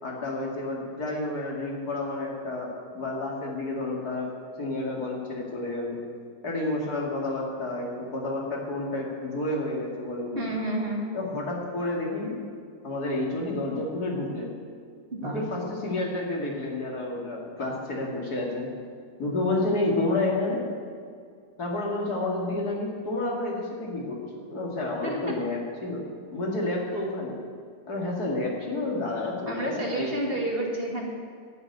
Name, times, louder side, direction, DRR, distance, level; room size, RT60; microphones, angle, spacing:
voice 1, 0.0-4.3 4.6-6.0 6.4-10.4 11.1-12.4 12.8-14.5 15.2-18.7 19.2-20.7 21.6-26.0 26.3-27.4 27.9-30.4, left 2 dB, 65° left, -2 dB, 3.0 m, -30 dB
voice 2, 10.4-11.1 15.1-15.4 25.0-25.4 29.5-31.1, right 1 dB, 35° right, -1 dB, 2.1 m, -30 dB
10.5 x 9.8 x 9.2 m, 2.2 s
omnidirectional pair, 1.8 m